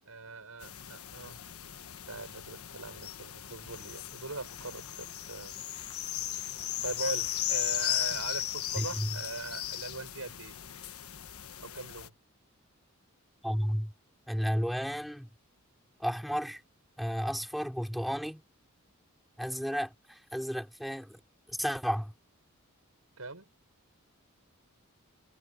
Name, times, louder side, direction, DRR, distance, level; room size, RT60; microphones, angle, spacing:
voice 1, 0.0-1.4 1.9-5.5 6.8-10.6 11.6-12.1 23.2-23.5, right 3 dB, 85° right, 5.5 m, -41 dB
sound 1, 0.6-12.1, left 12 dB, 85° left, 1.3 m, -37 dB
voice 2, 8.8-9.2 13.4-13.9 14.3-15.3 16.0-16.6 17.0-18.4 19.4-21.2 21.5-22.1, equal, ahead, 3.0 m, -33 dB
head